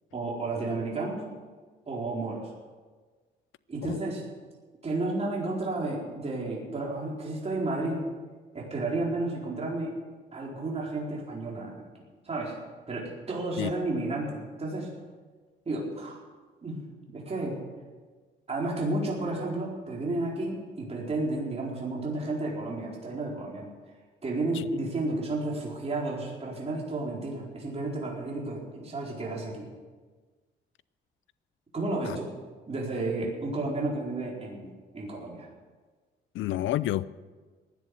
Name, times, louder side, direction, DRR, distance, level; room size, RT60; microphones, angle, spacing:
voice 1, 0.1-1.3 1.9-2.5 3.7-4.3 4.8-8.1 8.5-9.9 10.3-11.9 12.2-12.5 12.9-14.9 15.7-16.2 16.6-17.6 18.5-23.7 24.2-29.7 31.7-32.3 32.7-35.5, right 2 dB, 30° right, -3 dB, 4.4 m, -32 dB
voice 2, 36.3-37.0, left 14 dB, 80° left, 18 dB, 0.5 m, -29 dB
15.5 x 10.5 x 8.0 m, 1.4 s
cardioid pair, 90°, 20 cm